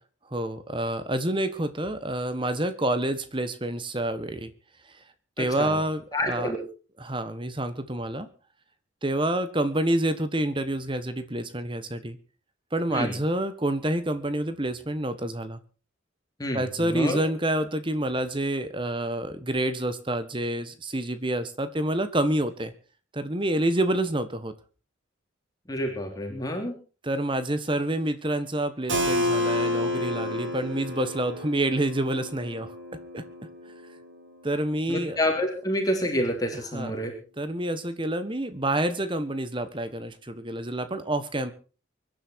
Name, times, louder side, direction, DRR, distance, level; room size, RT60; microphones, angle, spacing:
voice 1, 0.3-4.5 5.4-6.5 7.0-8.3 9.0-12.2 12.7-15.6 16.5-22.7 23.1-24.5 27.0-32.7 33.1-33.2 34.4-35.2 36.7-36.9 37.4-41.5, right 1 dB, 25° right, 11 dB, 1.4 m, -28 dB
voice 2, 5.4-5.8 6.1-6.6 12.9-13.1 16.4-17.2 25.7-26.8 34.9-37.1, left 1 dB, 20° left, 2 dB, 3.3 m, -28 dB
Keyboard (musical), 28.9-34.4, left 1 dB, 75° right, 4.4 m, -30 dB
24.0 x 10.5 x 4.7 m, 0.37 s
head